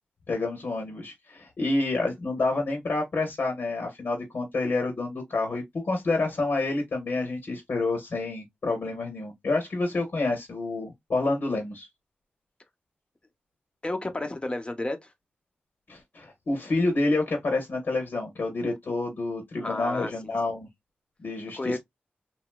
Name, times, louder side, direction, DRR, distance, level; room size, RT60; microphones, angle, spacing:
voice 1, 0.3-11.9 15.9-20.7 21.2-21.8, left 2 dB, 75° left, 1.5 m, -28 dB
voice 2, 13.8-15.0 19.6-20.1 21.5-21.8, left 2 dB, 30° left, 0.9 m, -31 dB
3.0 x 2.8 x 2.2 m
cardioid pair, 50°, 4 cm